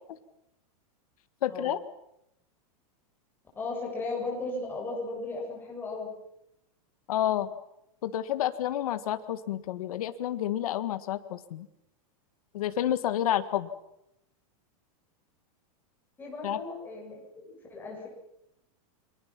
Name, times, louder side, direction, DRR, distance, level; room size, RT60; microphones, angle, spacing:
voice 1, 1.4-1.8 7.1-7.5 8.0-11.7 12.5-13.7 16.4-16.6, left 11 dB, 75° left, 10 dB, 1.7 m, -29 dB
voice 2, 3.6-6.1 16.2-18.1, left 3 dB, 10° left, -1 dB, 7.4 m, -36 dB
29.5 x 24.0 x 6.0 m, 0.82 s
supercardioid pair, 170°, 19 cm